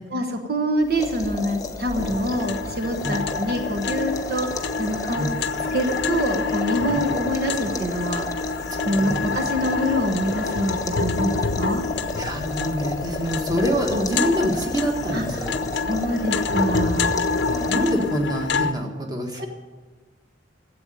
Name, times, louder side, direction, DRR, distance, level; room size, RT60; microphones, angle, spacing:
voice 1, 0.1-5.4 5.7-8.3 8.8-11.8 15.1-15.5 15.7-17.1 19.4-19.5, equal, 55° right, 4 dB, 1.1 m, -25 dB
sound 1, 0.8-18.2, left 2 dB, 20° left, 1.0 m, -33 dB
sound 2, 2.0-18.7, left 4 dB, 65° left, 0.7 m, -27 dB
voice 2, 8.8-9.3 12.2-15.6 17.2-19.5, equal, 20° right, 2 dB, 1.8 m, -26 dB
14.0 x 7.9 x 8.9 m, 1.4 s
head